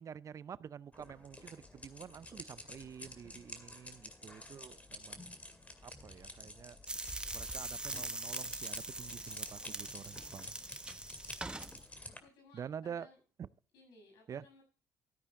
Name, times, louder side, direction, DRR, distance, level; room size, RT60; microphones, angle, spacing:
voice 1, 0.0-5.4 5.8-6.8 7.3-10.5 12.5-13.1 14.3-14.5, right 8 dB, 50° right, 0.5 m, -48 dB
sound 1, 0.9-12.2, left 2 dB, 20° left, 2.2 m, -51 dB
sound 2, 6.9-11.8, right 2 dB, 15° right, 1.2 m, -42 dB
voice 2, 12.0-13.2 13.7-14.6, left 3 dB, 80° left, 7.0 m, -61 dB
13.0 x 9.7 x 3.7 m
supercardioid pair, 65°, 7 cm